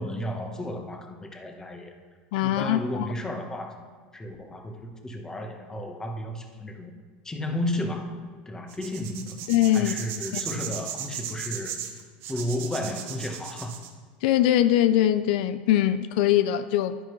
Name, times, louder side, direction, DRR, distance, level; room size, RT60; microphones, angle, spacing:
voice 1, 0.0-1.9 2.4-6.9 7.2-8.2 8.5-9.5 9.7-11.8 12.3-13.8, left 1 dB, 10° left, 4 dB, 1.2 m, -33 dB
voice 2, 2.3-3.1 9.5-10.0 10.3-10.4 14.2-17.0, left 12 dB, 70° left, 12 dB, 0.4 m, -22 dB
sound 1, 8.7-13.9, right 9 dB, 55° right, 1.2 m, -36 dB
11.0 x 9.9 x 3.2 m, 1.5 s
supercardioid pair, 110°, 5 cm